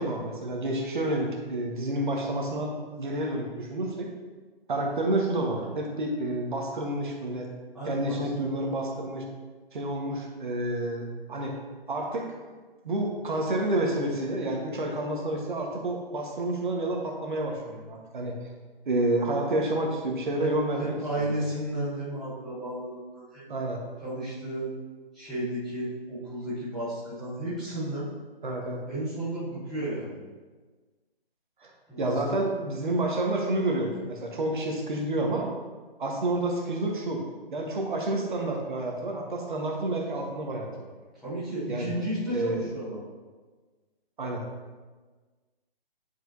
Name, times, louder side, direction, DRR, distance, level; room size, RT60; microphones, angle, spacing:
voice 1, 0.0-4.1 4.7-7.5 7.8-9.2 9.7-11.6 11.9-12.3 12.8-18.4 18.8-21.4 23.5-23.8 28.4-28.8 31.6-31.7 32.0-35.5 36.0-37.2 37.5-40.9 41.7-41.9 42.3-42.7 44.2-44.4, right 1 dB, 55° right, 1 dB, 1.4 m, -29 dB
voice 2, 7.7-8.2 20.4-23.5 24.0-24.7 25.1-28.1 28.9-30.2 31.9-32.2 41.1-43.0, right 1 dB, ahead, -17 dB, 0.7 m, -33 dB
10.5 x 4.8 x 2.7 m, 1.4 s
figure-of-eight pair, 155°, 30 cm